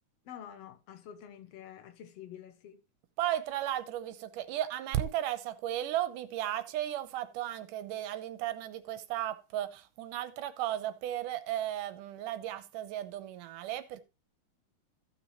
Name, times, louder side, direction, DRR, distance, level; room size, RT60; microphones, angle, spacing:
voice 1, 0.3-2.8, left 9 dB, 65° left, 1.6 m, -48 dB
voice 2, 3.2-14.0, right 12 dB, 85° right, 2.4 m, -35 dB
14.5 x 6.2 x 3.0 m
omnidirectional pair, 3.6 m